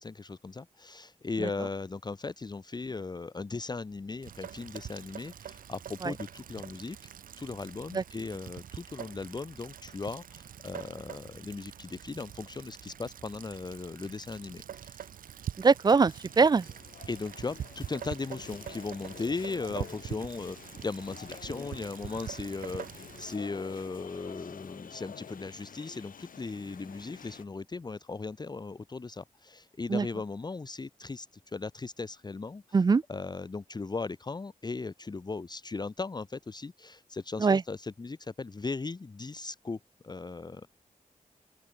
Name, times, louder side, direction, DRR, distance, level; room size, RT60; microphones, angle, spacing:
voice 1, 0.0-7.0 7.4-15.1 17.1-32.8 33.1-39.8 40.0-40.7, left 3 dB, 30° left, 0.9 m, -38 dB
Rain, 4.2-23.4, right 9 dB, 85° right, 0.6 m, -44 dB
voice 2, 15.6-16.7 29.9-30.1 32.7-33.0 37.4-37.6, right 4 dB, 30° right, 0.4 m, -22 dB
sound 1, 16.0-27.4, left 7 dB, 80° left, 2.8 m, -49 dB
open air
wide cardioid pair, 95°, 14 cm